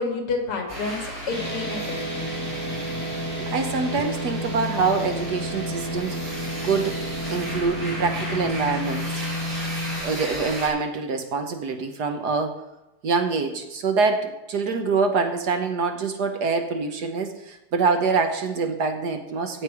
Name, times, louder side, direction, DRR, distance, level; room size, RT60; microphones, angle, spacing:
voice 1, 0.0-2.3, left 4 dB, 85° left, 3 dB, 3.0 m, -29 dB
sound 1, 0.7-10.7, right 1 dB, 35° right, 3.9 m, -35 dB
sound 2, 1.3-10.0, equal, 5° left, 4.7 m, -31 dB
voice 2, 3.4-6.4 6.6-9.3 10.0-12.6 13.0-19.6, right 4 dB, 60° right, 6 dB, 1.2 m, -25 dB
15.5 x 7.5 x 4.8 m, 0.95 s
omnidirectional pair, 2.4 m